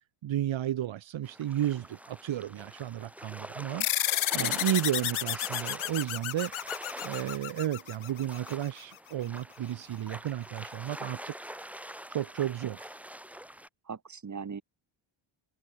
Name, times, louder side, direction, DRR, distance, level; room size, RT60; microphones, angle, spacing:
voice 1, 0.0-4.0 4.3-6.8 7.0-11.3 12.1-13.0, right 12 dB, 70° right, 1.5 m, -33 dB
sound 1, 1.2-13.7, equal, 5° right, 5.1 m, -45 dB
sound 2, 3.8-8.7, left 14 dB, 80° left, 1.0 m, -32 dB
voice 2, 13.9-14.6, right 5 dB, 35° right, 6.9 m, -39 dB
wide cardioid pair, 150°, 48 cm